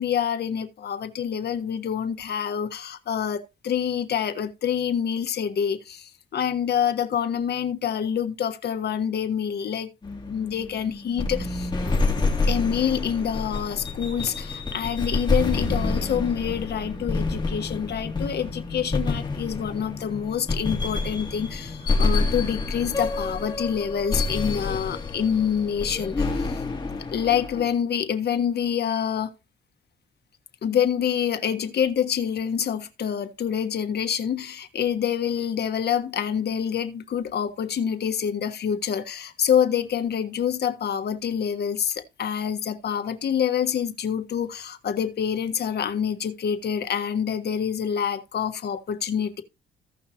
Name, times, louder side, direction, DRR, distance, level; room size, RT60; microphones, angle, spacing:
voice 1, 0.0-9.9 10.3-11.7 12.5-26.6 27.1-29.3 30.6-49.4, left 8 dB, 55° left, 1.4 m, -26 dB
sound 1, 10.0-27.7, left 3 dB, 20° left, 3.1 m, -28 dB
16.0 x 5.6 x 2.9 m
cardioid pair, 90°, 20 cm